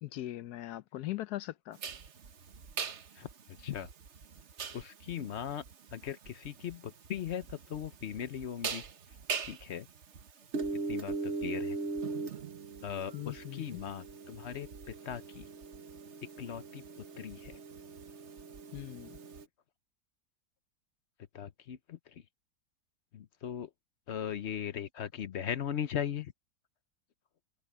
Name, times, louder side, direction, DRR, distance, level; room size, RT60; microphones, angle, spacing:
voice 1, 0.0-1.8 13.1-13.8 18.7-19.2, left 15 dB, 75° left, 1.2 m, -40 dB
sound 1, 1.8-19.4, right 4 dB, 50° right, 1.3 m, -41 dB
voice 2, 3.6-3.9 4.7-5.6 5.9-8.8 9.4-9.9 10.9-11.8 12.8-15.5 16.4-16.8 17.2-17.6 21.3-22.2 23.1-23.7 24.1-26.3, left 9 dB, 55° left, 0.8 m, -39 dB
open air
omnidirectional pair, 1.7 m